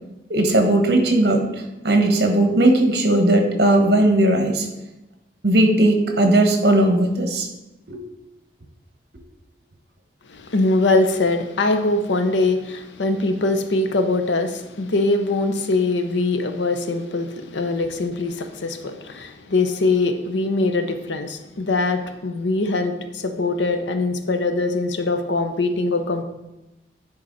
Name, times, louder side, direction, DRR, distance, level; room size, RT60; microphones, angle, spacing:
voice 1, 0.3-1.4 1.8-4.7 5.4-7.5 7.9-8.0, right 1 dB, 65° right, 4 dB, 1.1 m, -17 dB
voice 2, 10.3-26.2, left 2 dB, 85° left, 8 dB, 0.7 m, -22 dB
9.8 x 4.0 x 4.0 m, 0.98 s
head